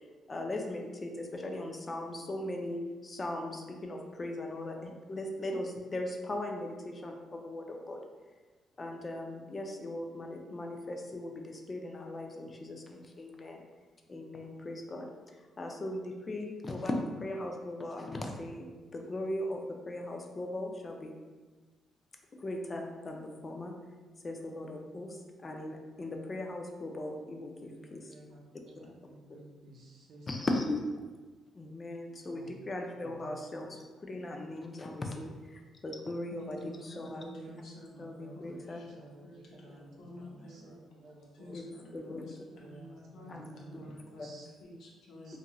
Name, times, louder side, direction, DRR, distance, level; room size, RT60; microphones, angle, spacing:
voice 1, 0.3-8.0 8.8-13.6 14.1-15.1 15.6-21.1 22.3-23.8 24.2-28.1 30.3-30.8 31.5-37.2 38.0-38.8 41.5-41.6 41.9-42.4 43.3-43.5, left 1 dB, 30° left, 2 dB, 0.4 m, -38 dB
voice 2, 27.6-30.5 32.3-32.5 33.0-33.3 36.3-36.6 36.9-37.6 37.9-41.6 42.6-44.5 45.2-45.4, right 2 dB, 65° right, -2 dB, 0.6 m, -53 dB
voice 3, 36.3-40.8 41.3-45.4, left 1 dB, 75° left, -3 dB, 0.7 m, -51 dB
2.8 x 2.5 x 2.3 m, 1.3 s
cardioid pair, 90°, 0 cm